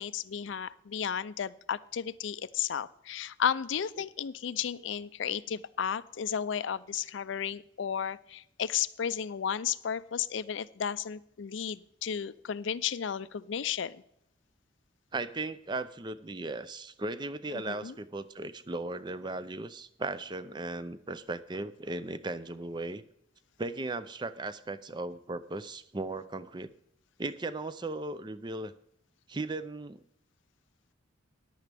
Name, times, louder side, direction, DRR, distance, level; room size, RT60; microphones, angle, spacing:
voice 1, 0.0-14.0 17.5-18.0, left 8 dB, 70° left, 16 dB, 0.4 m, -33 dB
voice 2, 15.1-23.0 23.6-26.7 27.2-28.7 29.3-30.0, right 2 dB, 25° right, 13 dB, 0.5 m, -37 dB
14.0 x 11.0 x 3.4 m, 0.73 s
head